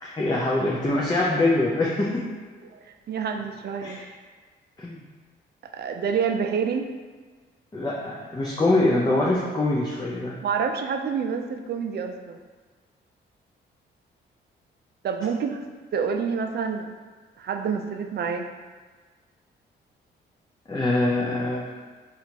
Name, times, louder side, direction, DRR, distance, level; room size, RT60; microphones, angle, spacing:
voice 1, 0.0-2.2 3.8-4.0 4.8-5.0 7.7-10.4 20.7-21.8, left 2 dB, 20° left, -4 dB, 0.6 m, -24 dB
voice 2, 3.1-4.0 5.7-6.9 10.4-12.4 15.0-15.7 15.9-16.9 17.4-18.5, right 6 dB, 55° right, 6 dB, 0.4 m, -27 dB
4.2 x 2.5 x 2.7 m, 1.5 s
supercardioid pair, 60°, 21 cm